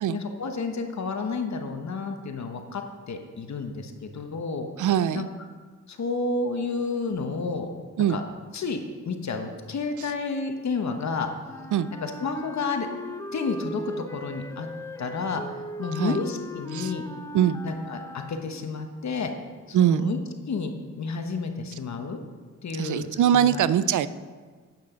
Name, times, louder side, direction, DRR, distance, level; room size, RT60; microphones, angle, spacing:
voice 1, 0.1-4.7 5.1-5.3 5.9-7.7 8.1-8.2 8.5-11.3 11.9-12.9 13.3-14.7 15.0-15.4 15.8-17.0 17.6-19.3 19.7-20.2 20.5-20.7 21.0-22.2 22.6-23.7, left 4 dB, 65° left, 5 dB, 1.1 m, -31 dB
voice 2, 4.8-5.3 8.0-8.2 11.7-11.9 16.0-16.2 16.7-16.9 17.3-17.6 19.7-20.2 22.8-24.1, right 10 dB, 80° right, 15 dB, 0.5 m, -22 dB
Wind instrument woodwind instrument, 11.4-18.8, equal, 10° left, 0.7 m, -38 dB
8.7 x 6.2 x 5.8 m, 1.5 s
cardioid pair, 65°, 30 cm